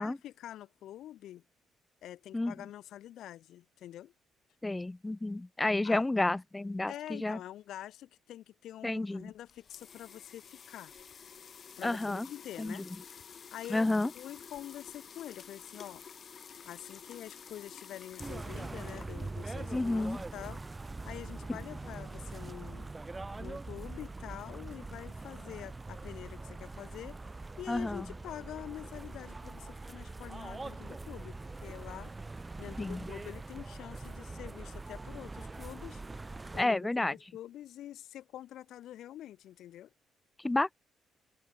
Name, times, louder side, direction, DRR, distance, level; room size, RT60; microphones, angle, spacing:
voice 1, 0.0-1.4 2.0-4.1 5.8-6.1 6.9-10.9 11.8-12.9 13.5-13.9 14.1-16.0 16.6-20.6 21.0-22.9 23.4-27.2 27.6-32.1 32.6-36.0 36.5-39.9, left 12 dB, 80° left, 1.6 m, -46 dB
voice 2, 4.6-7.4 8.8-9.3 11.8-12.3 12.6-12.8 13.7-14.1 19.7-20.2 27.7-28.1 32.8-33.0 36.6-37.1 40.4-40.8, left 2 dB, 15° left, 0.9 m, -30 dB
sound 1, 9.2-19.5, left 7 dB, 50° left, 4.7 m, -51 dB
sound 2, 18.2-36.6, right 3 dB, 20° right, 7.0 m, -43 dB
open air
cardioid pair, 90°, 0 cm